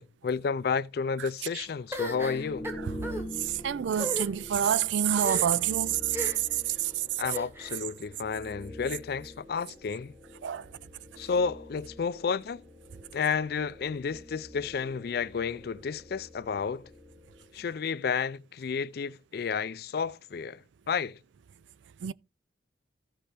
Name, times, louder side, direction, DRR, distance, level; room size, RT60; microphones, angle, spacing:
voice 1, 0.0-2.7 7.2-10.1 11.2-12.6 13.1-16.8 17.5-21.2, left 5 dB, 60° left, 0.4 m, -31 dB
sound 1, 1.9-3.2 3.9-4.3 5.2-5.7 6.1-6.6 7.2-7.8, equal, 15° right, 1.7 m, -36 dB
sound 2, 2.0-17.7, left 1 dB, ahead, 1.0 m, -46 dB
voice 2, 3.6-6.0 10.4-10.6 22.0-22.1, right 9 dB, 90° right, 0.4 m, -26 dB
15.5 x 5.5 x 3.4 m
head